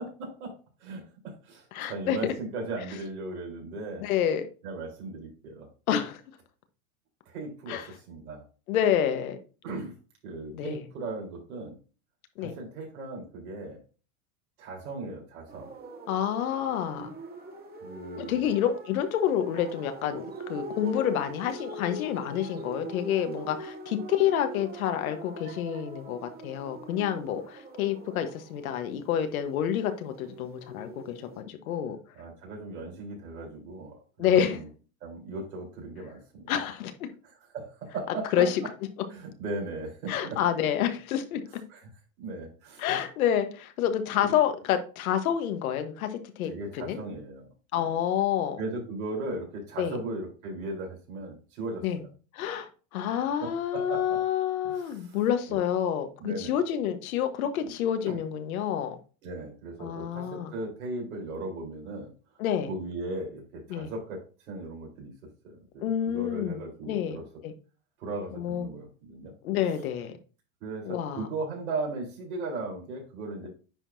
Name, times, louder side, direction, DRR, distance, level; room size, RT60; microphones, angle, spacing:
voice 1, 0.0-4.1 4.6-5.7 7.3-8.4 9.6-9.9 10.2-11.7 12.4-13.8 14.6-15.7 17.8-18.5 32.1-34.7 35.0-36.5 37.2-38.5 39.1-40.4 41.7-41.9 42.2-42.8 44.2-44.3 46.4-47.5 47.7-47.9 48.6-52.1 53.4-54.2 54.6-55.2 55.5-55.6 56.2-56.6 57.6-57.7 58.0-58.2 59.2-62.1 62.7-67.3 68.0-69.3 69.6-69.8 70.6-73.5, right 2 dB, 80° right, 0 dB, 4.1 m, -37 dB
voice 2, 1.7-2.3 4.0-4.4 5.9-6.2 7.7-7.8 8.7-9.4 10.5-10.8 12.4-12.6 16.1-17.1 18.2-32.0 34.2-34.6 36.5-37.1 38.3-38.6 40.1-41.4 42.8-47.0 47.7-48.6 49.8-50.0 51.8-52.0 52.3-59.0 59.8-60.5 62.4-62.7 63.7-63.9 65.8-66.6 66.9-67.2 67.4-67.5 68.4-68.7 69.4-70.1 70.8-71.3, left 9 dB, 80° left, 8 dB, 1.4 m, -28 dB
sound 1, 15.5-31.4, right 1 dB, 20° right, 1.8 m, -43 dB
9.8 x 4.6 x 2.7 m, 0.35 s
hypercardioid pair, 110°, 42 cm